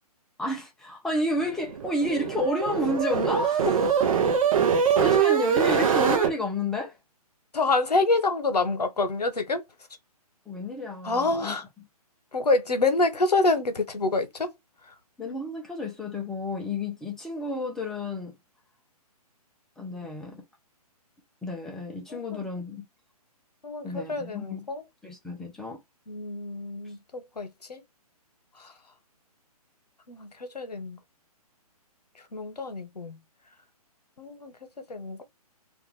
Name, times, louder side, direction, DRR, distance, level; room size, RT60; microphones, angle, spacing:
voice 1, 0.4-3.8 4.9-7.0 10.5-11.9 15.2-18.3 19.8-20.4 21.4-22.8 23.8-24.7 25.0-25.8, left 1 dB, ahead, 0.3 m, -31 dB
sound 1, 1.6-6.3, right 7 dB, 60° right, 0.7 m, -23 dB
voice 2, 7.5-9.6 11.0-11.6 12.3-14.5 22.1-22.5 23.6-24.8 26.1-27.8 28.6-28.7 30.1-31.0 32.3-33.2 34.2-34.6 34.9-35.2, left 3 dB, 90° left, 0.8 m, -27 dB
2.5 x 2.2 x 3.0 m
figure-of-eight pair, 135°, 20 cm